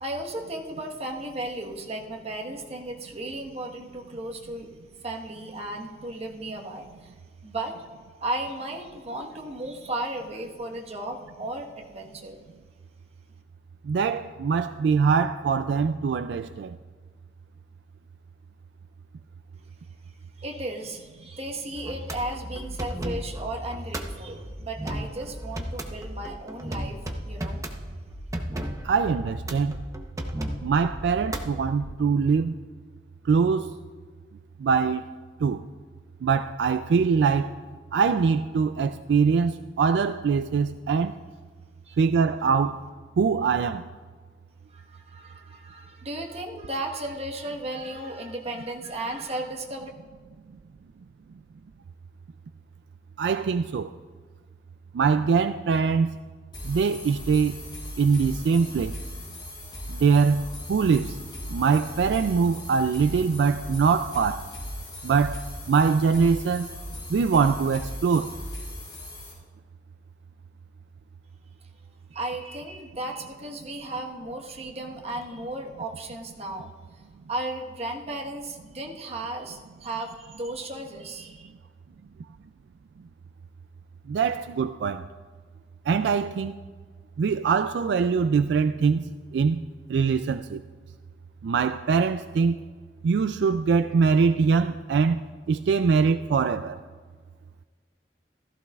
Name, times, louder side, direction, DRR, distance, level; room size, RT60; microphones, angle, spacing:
voice 1, 0.0-4.7 5.0-7.1 7.4-7.7 8.2-12.4 20.4-27.6 41.8-42.0 44.7-49.9 72.1-76.7 77.3-81.5, right 1 dB, 35° right, 1.3 m, -35 dB
voice 2, 13.8-16.8 28.8-29.8 30.6-32.5 33.2-33.7 34.6-35.0 35.4-35.6 36.2-37.5 37.9-41.2 42.0-42.9 43.2-43.9 53.2-53.9 54.9-56.1 56.6-57.6 58.0-59.0 59.9-61.2 61.5-64.5 65.0-66.7 67.1-68.3 84.1-85.0 85.9-86.5 87.2-89.0 89.3-89.6 89.9-90.6 91.4-92.6 93.0-96.8, right 5 dB, 75° right, 0.3 m, -23 dB
sound 1, 21.7-31.9, equal, 20° right, 0.8 m, -35 dB
sound 2, 56.5-69.3, left 1 dB, 30° left, 3.5 m, -38 dB
15.5 x 14.5 x 2.4 m
head